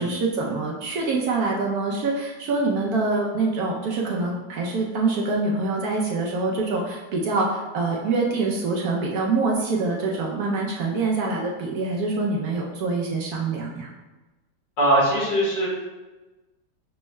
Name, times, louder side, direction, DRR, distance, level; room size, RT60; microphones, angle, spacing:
voice 1, 0.0-13.9, right 3 dB, 70° right, -2 dB, 1.0 m, -25 dB
voice 2, 14.8-15.7, right 1 dB, 80° left, -8 dB, 2.4 m, -20 dB
6.2 x 2.2 x 3.0 m, 1.1 s
omnidirectional pair, 1.9 m